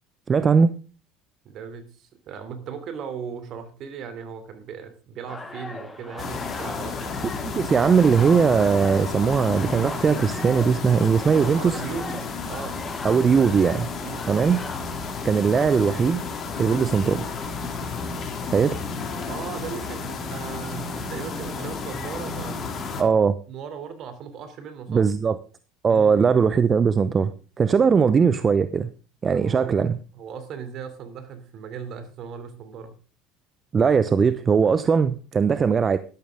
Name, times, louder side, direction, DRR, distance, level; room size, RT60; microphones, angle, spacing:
voice 1, 0.3-0.7 7.4-11.8 13.0-13.9 14.3-14.6 15.2-16.2 16.6-17.2 18.4-18.8 23.0-23.3 24.9-25.4 25.8-28.9 29.2-30.0 33.7-36.0, right 6 dB, 30° right, 0.7 m, -20 dB
voice 2, 1.4-7.3 11.5-12.8 14.0-14.2 19.3-23.1 23.5-25.0 25.9-26.2 29.3-29.9 30.1-32.9, right 7 dB, 55° right, 3.0 m, -37 dB
sound 1, 5.3-15.7, left 3 dB, 15° left, 2.2 m, -39 dB
sound 2, 6.2-23.0, left 4 dB, 40° left, 3.0 m, -32 dB
12.5 x 11.5 x 3.7 m
hypercardioid pair, 85°, 0 cm